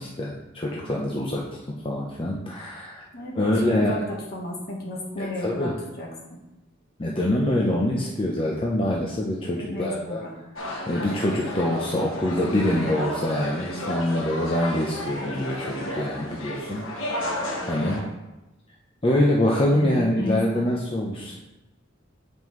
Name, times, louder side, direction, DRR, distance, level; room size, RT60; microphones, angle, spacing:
voice 1, 0.0-1.4 1.8-3.1 3.3-3.9 5.2-5.7 7.0-10.2 10.9-16.8 17.6-18.0 19.0-21.4, left 1 dB, 25° left, -3 dB, 0.6 m, -25 dB
voice 2, 3.1-4.0 4.3-6.4 9.5-10.3 19.7-20.6, left 1 dB, 50° left, -2 dB, 1.4 m, -33 dB
sound 1, 10.6-18.0, left 1 dB, 85° left, 1.2 m, -33 dB
7.5 x 5.3 x 3.1 m, 1.0 s
head